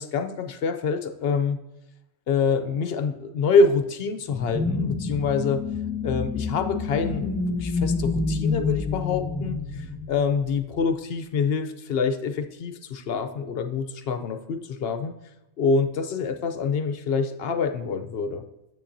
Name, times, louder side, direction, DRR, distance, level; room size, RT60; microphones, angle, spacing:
voice 1, 0.0-1.6 2.3-5.6 6.0-15.1 15.6-18.4, left 4 dB, 60° left, 8 dB, 0.7 m, -26 dB
sound 1, 4.3-10.8, left 4 dB, 10° left, 1.1 m, -28 dB
9.9 x 7.5 x 2.6 m, 0.94 s
omnidirectional pair, 1.3 m